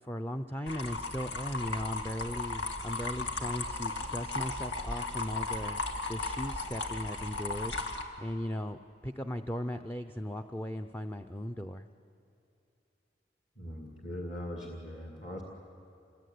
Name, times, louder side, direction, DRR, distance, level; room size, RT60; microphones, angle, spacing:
voice 1, 0.0-5.8 6.1-7.7 8.2-11.9, equal, 10° left, 6 dB, 0.6 m, -37 dB
sound 1, 0.7-8.0, left 3 dB, 90° left, 2.2 m, -36 dB
voice 2, 13.6-15.4, equal, 45° left, 0 dB, 2.3 m, -40 dB
26.5 x 21.5 x 9.5 m, 2.7 s
head